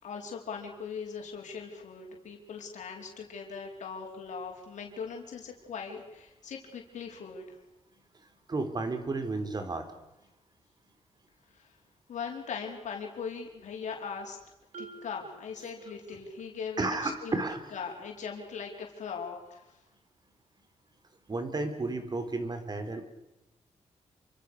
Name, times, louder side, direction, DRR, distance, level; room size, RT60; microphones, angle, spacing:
voice 1, 0.0-7.6 11.5-11.7 12.1-14.4 14.8-17.4 17.7-19.8, left 6 dB, 85° left, 1 dB, 4.8 m, -40 dB
voice 2, 8.5-9.9 16.8-17.6 21.3-23.0, right 3 dB, 35° right, 8 dB, 4.0 m, -32 dB
Marimba xylophone, 14.7-16.5, right 4 dB, 70° right, 5.4 m, -50 dB
28.0 x 25.5 x 6.7 m, 0.93 s
wide cardioid pair, 110°, 12 cm